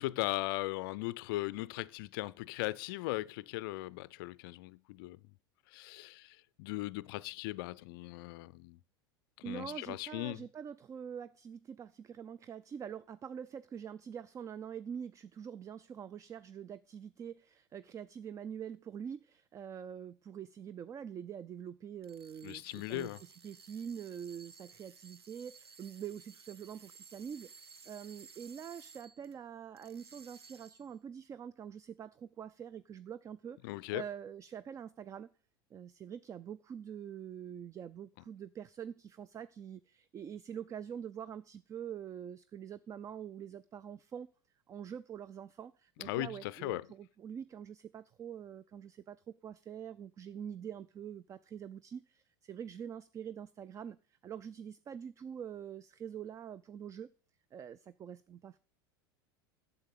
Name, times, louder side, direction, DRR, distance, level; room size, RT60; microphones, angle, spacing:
voice 1, 0.0-5.2 5.7-8.8 9.4-10.4 22.4-23.2 33.6-34.0 46.0-46.9, left 19 dB, 60° left, 0.4 m, -38 dB
voice 2, 9.4-35.3 35.7-44.3 44.7-57.1 57.5-58.6, right 8 dB, 25° right, 0.4 m, -45 dB
sound 1, 22.0-29.4 29.8-30.9, right 5 dB, 90° right, 0.8 m, -57 dB
8.1 x 7.2 x 6.6 m
hypercardioid pair, 85°, 13 cm